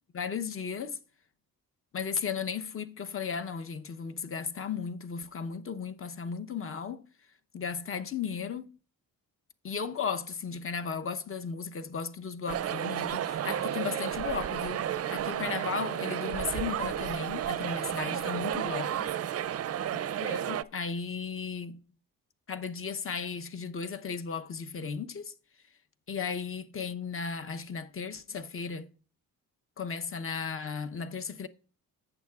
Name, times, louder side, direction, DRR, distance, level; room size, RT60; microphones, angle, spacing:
voice 1, 0.1-1.0 1.9-7.0 7.5-8.7 9.6-18.9 19.9-21.8 22.5-25.3 26.1-28.9 29.8-31.5, left 6 dB, 35° left, 0.8 m, -35 dB
sound 1, 12.5-20.6, right 10 dB, 45° right, 0.4 m, -32 dB
14.0 x 8.7 x 2.4 m
cardioid pair, 115°, 35 cm